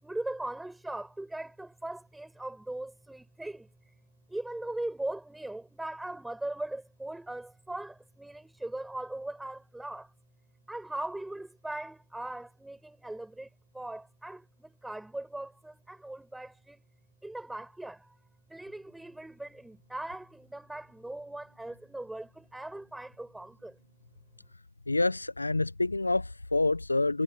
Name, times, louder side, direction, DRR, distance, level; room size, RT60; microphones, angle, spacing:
voice 1, 0.0-3.7 4.3-10.1 10.7-13.5 13.7-16.8 17.2-18.1 18.5-23.8, right 1 dB, ahead, 7.4 m, -39 dB
voice 2, 24.9-27.2, left 2 dB, 80° left, 1.1 m, -27 dB
figure-of-eight pair, 130°, 0 cm